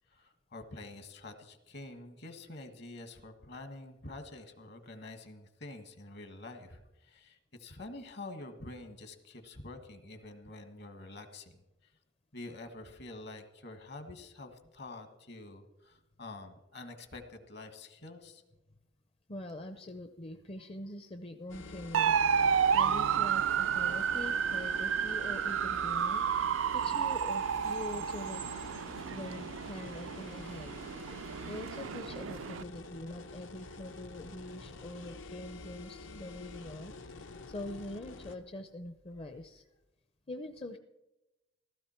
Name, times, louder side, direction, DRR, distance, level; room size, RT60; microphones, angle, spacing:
voice 1, 0.1-11.9 12.3-18.4, left 2 dB, 60° left, 7 dB, 1.7 m, -47 dB
voice 2, 19.3-22.1 22.7-28.4 29.1-30.8 31.5-39.6 40.3-40.8, left 1 dB, 30° left, 7 dB, 0.6 m, -44 dB
sound 1, 21.5-38.4, left 3 dB, 75° left, 1.0 m, -48 dB
sound 2, 21.9-32.6, right 7 dB, 85° right, 0.4 m, -31 dB
15.5 x 14.0 x 4.4 m, 1.0 s
head